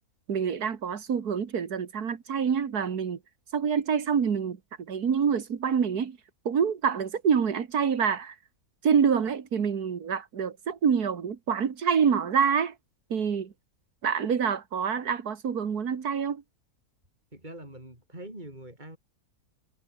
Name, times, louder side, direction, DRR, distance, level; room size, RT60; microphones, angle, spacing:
voice 1, 0.3-3.2 3.5-6.2 6.5-8.4 8.8-12.7 13.1-13.5 14.0-16.4, right 7 dB, 80° right, 2.2 m, -26 dB
voice 2, 17.3-19.0, right 1 dB, 30° right, 6.1 m, -43 dB
omnidirectional pair, 1.6 m